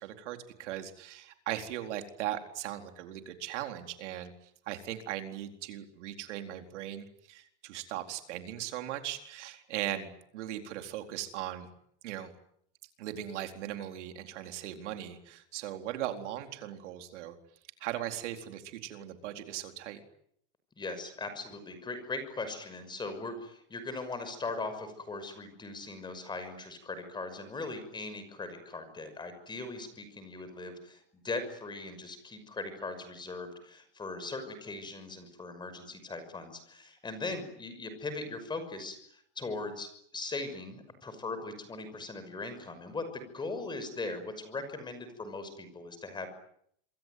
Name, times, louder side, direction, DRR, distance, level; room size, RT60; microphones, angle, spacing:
voice 1, 0.0-4.3 4.7-11.7 12.0-12.3 13.0-17.4 17.8-20.0, right 12 dB, 75° right, 6 dB, 4.3 m, -38 dB
voice 2, 20.8-46.3, left 3 dB, 10° left, 10 dB, 6.0 m, -39 dB
27.0 x 23.0 x 9.5 m, 0.69 s
supercardioid pair, 160°, 36 cm